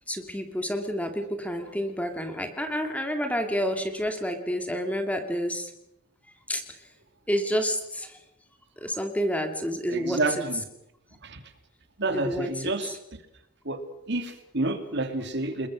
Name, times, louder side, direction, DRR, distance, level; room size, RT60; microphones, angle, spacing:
voice 1, 0.1-5.7 6.5-6.8 7.3-8.2 8.8-10.2 12.1-12.7, equal, 5° left, 5 dB, 2.5 m, -29 dB
voice 2, 9.9-10.6 11.2-11.4 12.0-13.0 13.6-13.8 14.1-15.7, right 2 dB, 55° right, 7 dB, 2.8 m, -29 dB
30.0 x 21.0 x 6.4 m, 0.82 s
head